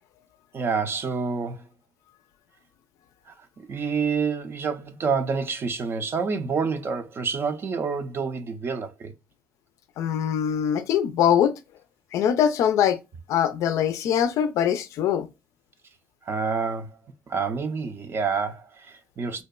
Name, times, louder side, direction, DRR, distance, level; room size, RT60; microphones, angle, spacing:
voice 1, 0.5-1.7 3.3-9.1 16.2-17.0 17.3-19.4, right 5 dB, 45° right, 0.5 m, -28 dB
voice 2, 10.0-11.5 12.1-13.0 13.3-15.3, left 9 dB, 70° left, 0.4 m, -22 dB
2.7 x 2.1 x 2.2 m
supercardioid pair, 65°, 6 cm